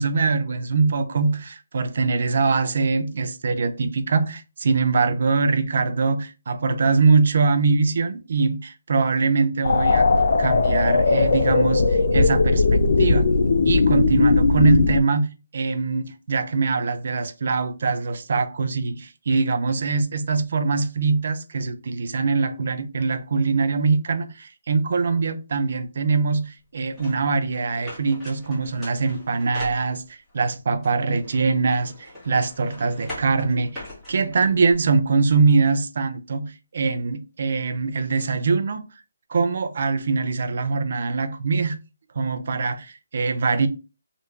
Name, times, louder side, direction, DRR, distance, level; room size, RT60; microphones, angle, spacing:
voice 1, 0.0-10.1 10.4-13.3 13.7-31.9 32.2-38.9 39.3-41.8 42.2-43.7, right 4 dB, 55° right, 0.5 m, -23 dB
sound 1, 9.6-15.0, left 3 dB, 60° left, 0.5 m, -18 dB
sound 2, 27.0-30.3 30.8-34.7, left 1 dB, ahead, 1.5 m, -42 dB
3.2 x 2.5 x 3.0 m
hypercardioid pair, 160°, 0 cm